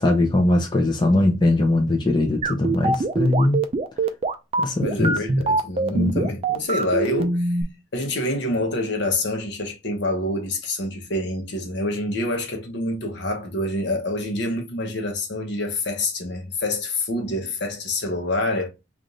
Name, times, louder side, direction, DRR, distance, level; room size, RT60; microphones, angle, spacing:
voice 1, 0.0-3.6 4.6-5.2 5.9-6.3, left 2 dB, 25° left, 0.6 m, -20 dB
sound 1, 2.4-7.6, right 3 dB, 30° right, 0.4 m, -23 dB
voice 2, 4.8-7.5 7.9-18.7, left 1 dB, 65° left, 1.0 m, -26 dB
3.3 x 2.5 x 3.9 m
head